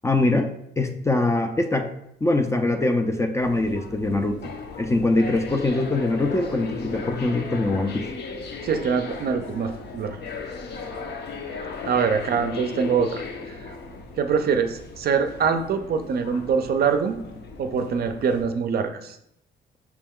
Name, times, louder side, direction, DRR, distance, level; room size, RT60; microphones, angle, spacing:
voice 1, 0.0-0.5 0.8-1.9 2.2-4.5 4.8-8.1, left 2 dB, 15° left, 6 dB, 0.4 m, -23 dB
sound 1, 3.4-18.4, left 4 dB, 55° left, 0.7 m, -37 dB
voice 2, 8.6-10.2 11.9-13.7 14.2-17.2 17.6-19.2, right 6 dB, 50° right, 8 dB, 0.5 m, -24 dB
5.9 x 2.2 x 3.6 m, 0.76 s
cardioid pair, 90°, 20 cm